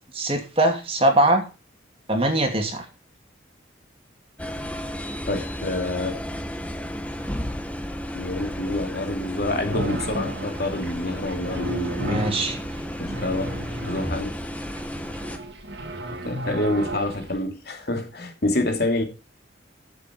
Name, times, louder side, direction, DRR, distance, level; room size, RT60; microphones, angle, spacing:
voice 1, 0.1-1.5 2.1-2.8 12.0-12.6, right 1 dB, 30° right, 2.6 m, -21 dB
sound 1, 4.4-15.4, equal, 5° left, 1.2 m, -33 dB
voice 2, 5.3-6.2 8.1-12.2 13.0-13.6 13.8-14.4 16.2-19.0, left 2 dB, 55° left, 2.6 m, -27 dB
sound 2, 9.7-17.4, right 1 dB, 60° right, 2.4 m, -34 dB
13.5 x 7.6 x 4.5 m
head